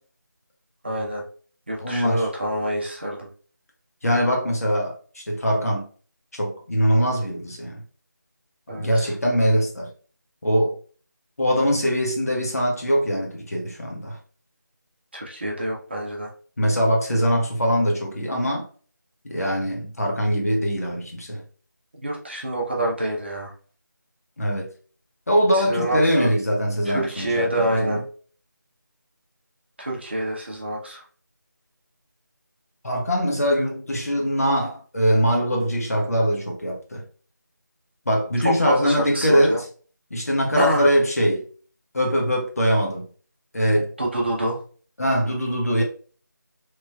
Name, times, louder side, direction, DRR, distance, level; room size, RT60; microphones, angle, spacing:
voice 1, 0.8-1.2 1.7-3.3 8.7-9.1 15.1-16.3 22.0-23.5 25.5-26.3 26.9-28.0 29.8-31.0 38.4-39.6 40.6-40.8 44.0-44.6, right 1 dB, 35° right, 0.7 m, -26 dB
voice 2, 1.8-2.3 4.0-5.8 6.3-7.8 8.7-9.9 10.4-10.8 11.4-14.2 16.6-18.7 19.3-21.4 24.4-24.7 25.3-28.0 32.8-37.0 38.1-39.7 40.1-41.4 41.9-43.1 43.5-43.9 45.0-45.8, equal, 50° left, 0.9 m, -22 dB
3.1 x 2.8 x 2.2 m
figure-of-eight pair, 165°, 11 cm